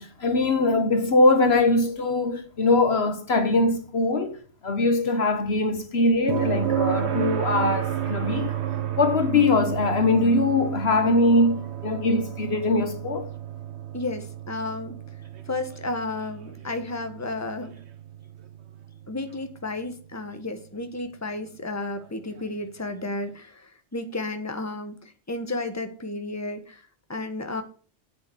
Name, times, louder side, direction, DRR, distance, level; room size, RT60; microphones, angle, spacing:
voice 1, 0.0-8.6 9.0-11.6 11.8-13.3, left 2 dB, 60° left, 1.4 m, -22 dB
sound 1, 6.3-20.1 22.4-22.5, right 9 dB, 65° right, 1.2 m, -32 dB
voice 2, 13.9-15.0 15.5-17.8 19.1-26.8 27.1-27.6, left 2 dB, 15° left, 1.4 m, -32 dB
8.3 x 7.7 x 8.1 m
omnidirectional pair, 1.2 m